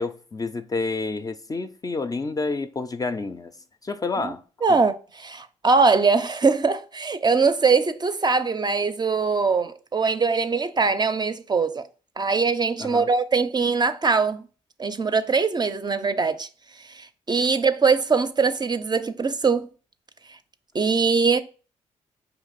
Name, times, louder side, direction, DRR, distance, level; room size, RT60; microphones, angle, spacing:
voice 1, 0.0-3.5 3.8-4.4 4.7-4.8 12.8-13.1, left 3 dB, 25° left, 0.4 m, -29 dB
voice 2, 4.6-11.9 12.2-14.4 14.8-16.5 16.9-19.7 20.7-21.4, right 4 dB, 30° right, 0.5 m, -22 dB
4.5 x 2.9 x 4.0 m
hypercardioid pair, 50°, 14 cm